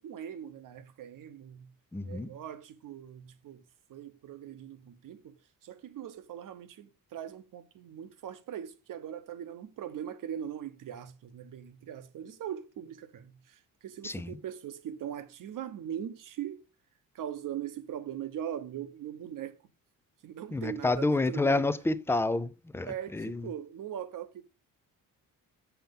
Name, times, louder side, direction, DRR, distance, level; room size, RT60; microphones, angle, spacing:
voice 1, 0.0-1.7 2.0-3.6 3.9-16.6 17.1-19.6 20.2-21.7 22.9-24.4, right 9 dB, 65° right, 1.0 m, -41 dB
voice 2, 1.9-2.3 14.0-14.4 20.5-23.5, left 2 dB, 5° left, 0.4 m, -29 dB
7.1 x 5.9 x 5.3 m
cardioid pair, 120°, 34 cm